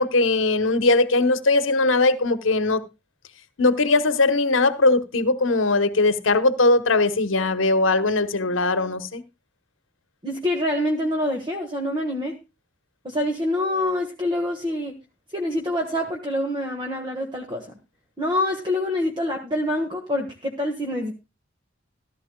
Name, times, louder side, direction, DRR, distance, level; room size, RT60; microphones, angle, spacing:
voice 1, 0.0-2.9 3.6-9.2, left 3 dB, 85° left, 1.0 m, -20 dB
voice 2, 10.2-12.4 13.0-14.9 15.3-17.7 18.2-21.1, left 1 dB, 25° right, 1.4 m, -26 dB
15.0 x 13.0 x 2.2 m
head